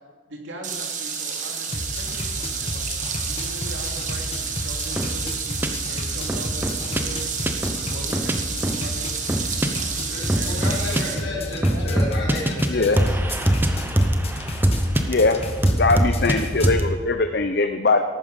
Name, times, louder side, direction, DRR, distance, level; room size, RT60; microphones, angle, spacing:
voice 1, 0.3-7.3 7.8-9.1 9.5-10.6 11.0-11.9, right 1 dB, 75° right, 1 dB, 2.7 m, -40 dB
sound 1, 0.6-11.2, right 6 dB, 40° right, 1.5 m, -30 dB
sound 2, 1.7-16.7, left 1 dB, 30° left, 1.3 m, -32 dB
sound 3, 5.0-5.1 5.6-5.7 6.3-7.0 7.5-7.8 8.1-8.3 8.6-8.8 9.3-9.7 10.3-11.0 11.6-12.7 13.0-15.1 15.6-16.4 16.6-16.9, right 1 dB, 10° right, 0.8 m, -21 dB
voice 2, 10.1-13.2, left 1 dB, 75° left, -4 dB, 4.9 m, -32 dB
voice 3, 12.7-13.0 15.1-15.4 15.7-18.0, left 3 dB, 55° left, 7 dB, 0.7 m, -21 dB
14.5 x 12.0 x 5.3 m, 1.5 s
head